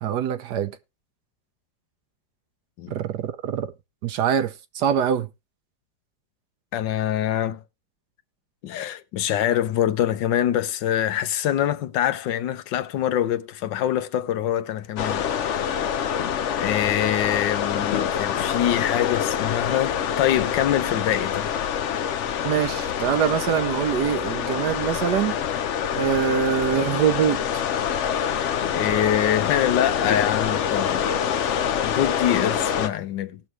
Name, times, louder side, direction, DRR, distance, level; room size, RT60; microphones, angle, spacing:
voice 1, 0.0-0.7 2.9-3.7 4.0-5.3 22.4-25.4 26.0-27.6, right 8 dB, 70° right, 1.3 m, -24 dB
voice 2, 6.7-7.6 8.6-15.3 16.6-21.5 28.6-31.1 31.8-33.4, left 11 dB, 85° left, 1.5 m, -24 dB
sound 1, 15.0-32.9, left 8 dB, 65° left, 0.7 m, -26 dB
18.5 x 6.4 x 3.0 m
omnidirectional pair, 1.9 m